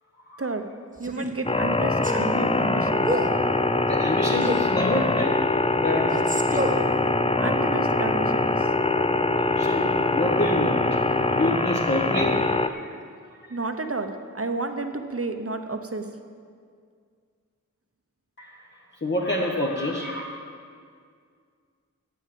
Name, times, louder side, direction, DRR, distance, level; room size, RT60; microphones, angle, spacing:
Male speech man speaking, 1.0-1.4 2.0-2.3 3.0-3.4 4.4-4.7 6.0-6.9, right 1 dB, 25° right, 1.4 m, -28 dB
voice 1, 1.0-3.1 7.4-8.7 13.5-16.1, right 3 dB, 45° right, 7 dB, 1.0 m, -31 dB
sound 1, 1.5-12.7, left 2 dB, 20° left, 0.5 m, -23 dB
voice 2, 3.9-6.3 7.2-7.7 9.2-13.0 13.3-13.5 18.4-18.7 18.9-20.3, left 1 dB, 35° left, -3 dB, 1.2 m, -28 dB
9.3 x 8.3 x 7.6 m, 2.1 s
wide cardioid pair, 45°, 33 cm